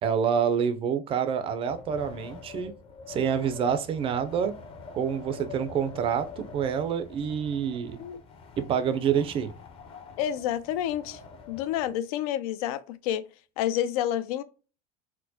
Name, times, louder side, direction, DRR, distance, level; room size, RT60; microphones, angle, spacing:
voice 1, 0.0-2.7 3.1-4.5 4.9-8.0 8.6-9.5, right 7 dB, 30° right, 0.4 m, -27 dB
Wind, 1.6-12.0, left 5 dB, 30° left, 0.5 m, -46 dB
voice 2, 10.2-11.2 11.5-13.2 13.6-14.4, left 11 dB, 90° left, 0.4 m, -29 dB
4.3 x 2.0 x 2.7 m
cardioid pair, 145°, 18 cm